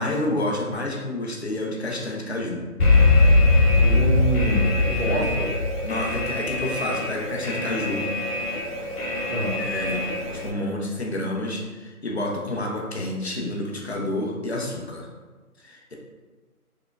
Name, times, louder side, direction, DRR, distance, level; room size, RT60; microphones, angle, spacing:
voice 1, 0.0-2.6 3.1-3.3 4.8-5.3 5.8-8.1 9.6-15.1 15.6-16.0, left 1 dB, 45° left, -1 dB, 0.5 m, -29 dB
Alarm, 2.8-10.5, left 2 dB, 80° left, 0.9 m, -21 dB
voice 2, 3.8-5.5 9.3-9.6, right 2 dB, 60° right, 0 dB, 0.7 m, -26 dB
4.7 x 2.0 x 2.3 m, 1.3 s
figure-of-eight pair, 165°, 46 cm